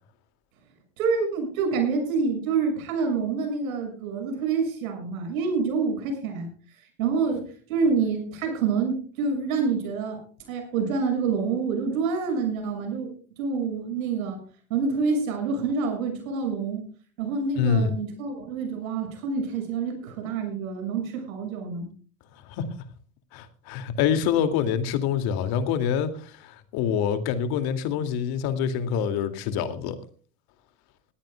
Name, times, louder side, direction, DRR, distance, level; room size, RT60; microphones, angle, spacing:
voice 1, 1.0-6.5 6.8-10.2 10.5-13.1 13.4-14.4 14.7-16.9 17.2-21.9, right 5 dB, 75° right, 5 dB, 6.6 m, -27 dB
voice 2, 17.6-17.9 22.5-22.6 23.3-30.0, left 8 dB, 60° left, 9 dB, 2.5 m, -26 dB
21.0 x 15.5 x 2.3 m, 0.41 s
hypercardioid pair, 75°, 41 cm